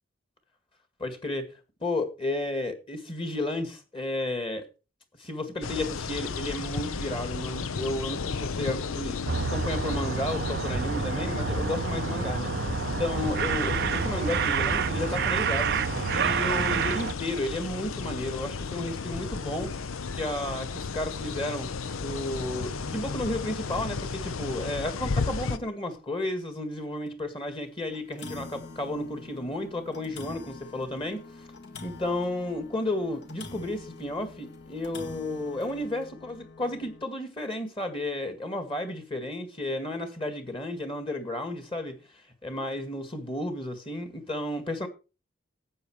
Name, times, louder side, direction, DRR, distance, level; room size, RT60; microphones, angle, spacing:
voice 1, 1.0-1.5 1.8-4.6 5.2-9.2 9.5-12.5 13.0-15.8 16.1-19.7 20.1-31.2 31.8-42.0 42.4-44.9, left 1 dB, 25° left, 1.9 m, -32 dB
sound 1, 5.6-25.6, left 4 dB, 80° left, 0.7 m, -34 dB
sound 2, 9.3-17.1, right 6 dB, 50° right, 0.4 m, -28 dB
sound 3, 21.8-22.0 22.4-22.5 23.0-23.1 24.1-24.2 24.8-24.9 25.3-25.4 25.9-26.0 27.1-27.2 27.6-27.7 27.9-37.1, left 3 dB, 55° left, 1.8 m, -45 dB
12.0 x 8.3 x 4.8 m
head